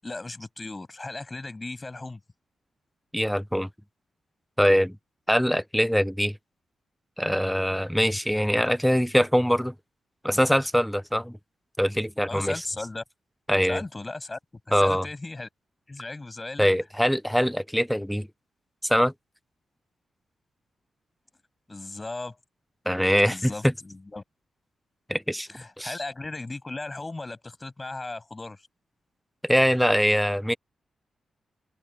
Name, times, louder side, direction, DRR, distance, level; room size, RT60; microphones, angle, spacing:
voice 1, 0.0-2.2 12.3-13.0 13.7-14.4 14.7-15.5 15.9-16.7 21.7-22.4 23.3-24.2 25.5-28.6, left 2 dB, 20° left, 8.0 m, -36 dB
voice 2, 3.1-3.7 4.6-5.0 5.3-6.4 7.2-9.7 10.2-11.4 11.8-12.6 13.5-13.8 14.7-15.1 16.6-18.3 18.8-19.1 22.9-23.7 25.1-25.5 25.8-26.0 29.4-30.5, equal, ahead, 0.6 m, -23 dB
open air
wide cardioid pair, 145°, 0 cm